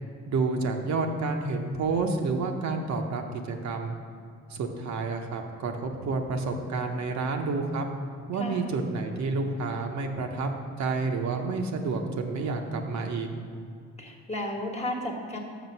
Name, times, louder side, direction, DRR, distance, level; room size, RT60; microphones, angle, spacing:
voice 1, 0.3-4.0 4.5-7.9 8.3-10.5 10.8-13.3, right 3 dB, 65° right, 3 dB, 0.8 m, -29 dB
voice 2, 14.0-15.4, left 1 dB, 20° left, 0 dB, 1.3 m, -33 dB
6.6 x 6.2 x 5.4 m, 2.3 s
cardioid pair, 90°, 30 cm